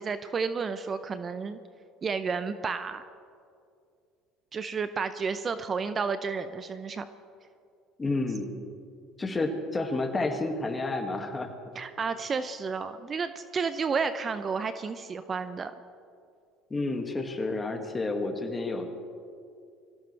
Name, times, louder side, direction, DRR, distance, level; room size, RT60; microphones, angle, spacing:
voice 1, 0.0-1.6 2.0-3.0 4.5-7.1 11.7-15.7, right 5 dB, 35° right, 11 dB, 0.7 m, -31 dB
voice 2, 8.0-8.5 9.2-11.5 16.7-18.9, left 2 dB, 20° left, 4 dB, 2.2 m, -30 dB
23.5 x 16.5 x 3.4 m, 2.4 s
supercardioid pair, 85°, 0 cm